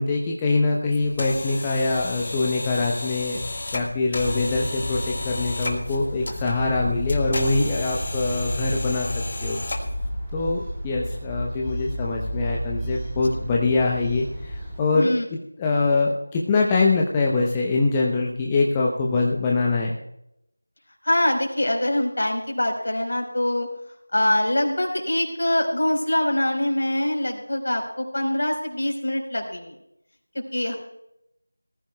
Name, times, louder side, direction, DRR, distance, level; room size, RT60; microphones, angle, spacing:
voice 1, 0.0-3.4 3.7-9.1 9.4-9.6 10.3-19.9, left 3 dB, 10° left, -2 dB, 0.8 m, -23 dB
sound 1, 0.9-10.1, left 2 dB, 35° left, 1.7 m, -33 dB
sound 2, 4.1-14.8, equal, 5° right, 3.3 m, -32 dB
voice 2, 14.9-15.3 21.0-23.7 24.1-29.7 30.3-30.8, left 1 dB, 60° left, 2 dB, 4.2 m, -24 dB
19.5 x 14.5 x 2.3 m, 0.80 s
figure-of-eight pair, 170°, 0 cm